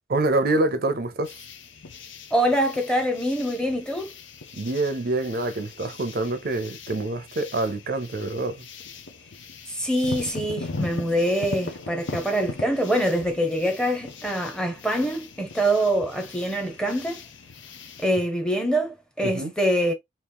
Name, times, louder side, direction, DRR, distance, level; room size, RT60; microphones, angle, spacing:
voice 1, 0.1-1.3 4.5-8.6 19.2-19.5, right 2 dB, 55° right, 0.6 m, -26 dB
sound 1, 1.2-18.1, left 4 dB, 85° left, 0.7 m, -39 dB
voice 2, 2.3-4.1 9.7-17.2 18.0-19.9, right 1 dB, 5° left, 0.8 m, -24 dB
3.0 x 2.9 x 3.5 m
head